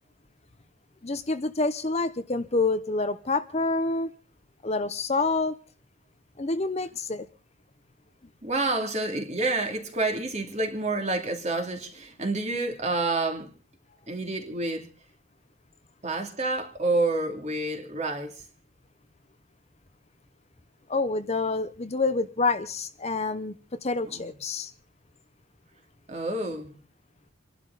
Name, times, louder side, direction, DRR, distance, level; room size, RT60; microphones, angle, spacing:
voice 1, 1.0-4.1 4.6-5.5 6.4-7.3 20.9-23.6 23.8-24.7, left 3 dB, 30° left, 0.7 m, -27 dB
voice 2, 8.4-13.5 14.1-14.9 16.0-18.4 24.1-24.3 26.1-26.8, right 2 dB, 35° right, 2.6 m, -28 dB
28.5 x 11.5 x 4.0 m
head